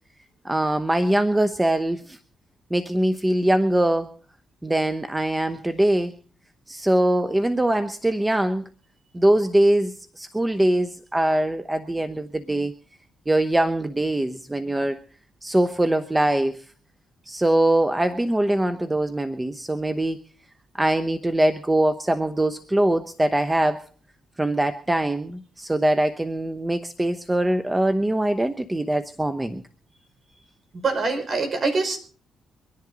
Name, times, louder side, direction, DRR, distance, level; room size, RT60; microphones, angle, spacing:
voice 1, 0.4-2.2 2.7-4.1 4.6-6.1 6.7-8.7 9.1-12.7 13.3-15.0 15.4-16.6 17.3-20.2 20.7-23.9 24.4-29.6, right 1 dB, 15° right, 10 dB, 1.0 m, -22 dB
voice 2, 30.7-32.0, right 3 dB, 50° right, 6 dB, 5.0 m, -24 dB
24.5 x 10.5 x 4.0 m, 0.41 s
cardioid pair, 70°, 0 cm